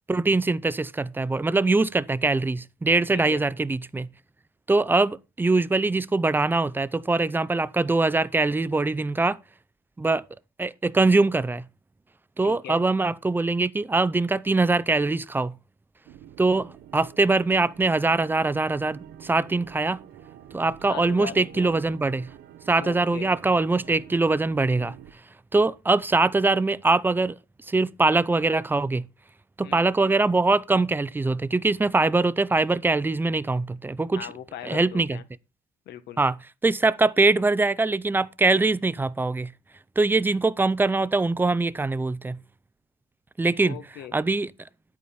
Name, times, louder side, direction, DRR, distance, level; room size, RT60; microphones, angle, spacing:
voice 1, 0.1-4.1 4.7-9.4 10.0-10.2 10.6-11.6 12.4-15.5 16.4-20.0 20.5-22.3 22.7-24.9 25.5-27.4 27.7-29.0 29.6-34.3 34.6-35.2 36.2-36.3 36.6-39.5 40.0-42.4 43.4-43.8 44.1-44.5, right 3 dB, 10° right, 0.6 m, -23 dB
voice 2, 3.1-3.5 12.4-12.8 20.9-21.7 22.7-23.4 29.6-29.8 34.2-35.2 35.9-36.2 43.6-44.2, left 10 dB, 75° left, 1.6 m, -39 dB
sound 1, 16.1-25.1, right 11 dB, 80° right, 1.0 m, -47 dB
11.0 x 8.4 x 4.3 m
cardioid pair, 110°, 17 cm